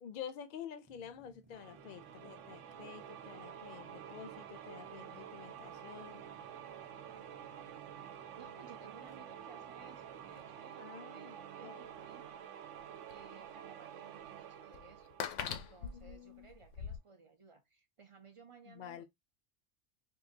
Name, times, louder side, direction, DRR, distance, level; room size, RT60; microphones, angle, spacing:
voice 1, 0.0-6.3 10.8-11.9 15.8-16.5 18.7-19.0, left 8 dB, 55° left, 0.6 m, -49 dB
sound 1, 0.8-10.6, equal, 10° right, 0.6 m, -64 dB
sound 2, 1.5-16.1, right 9 dB, 85° right, 0.9 m, -50 dB
voice 2, 8.4-10.8 11.1-12.4 13.1-15.0 15.4-19.0, right 4 dB, 55° right, 0.3 m, -59 dB
sound 3, 11.8-11.9 12.8-12.9 13.1-13.2 14.2-14.3 14.7-17.0, left 7 dB, 80° left, 0.9 m, -41 dB
4.6 x 2.4 x 2.7 m
omnidirectional pair, 1.2 m